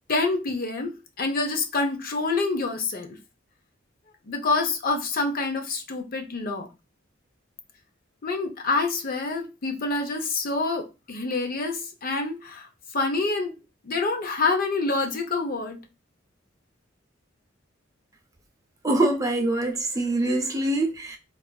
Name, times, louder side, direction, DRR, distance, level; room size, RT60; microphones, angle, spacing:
voice 1, 0.1-0.9 1.2-3.1 4.2-6.7 8.2-12.7 12.9-13.5 13.8-15.8, left 3 dB, 50° left, 0.6 m, -27 dB
voice 2, 18.8-21.2, right 1 dB, 15° right, 0.5 m, -24 dB
4.4 x 2.4 x 2.2 m
head